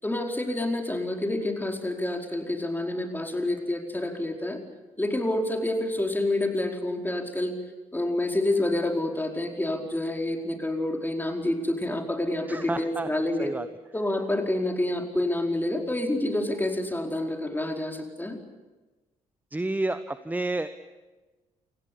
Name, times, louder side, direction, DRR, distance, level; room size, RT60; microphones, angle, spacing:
voice 1, 0.0-4.6 5.0-7.5 7.9-13.5 13.9-18.4, left 1 dB, 10° left, 2 dB, 4.9 m, -28 dB
voice 2, 12.5-13.7 19.5-20.7, right 2 dB, 10° right, 12 dB, 1.1 m, -30 dB
28.0 x 18.5 x 8.7 m, 1.2 s
figure-of-eight pair, 45°, 17 cm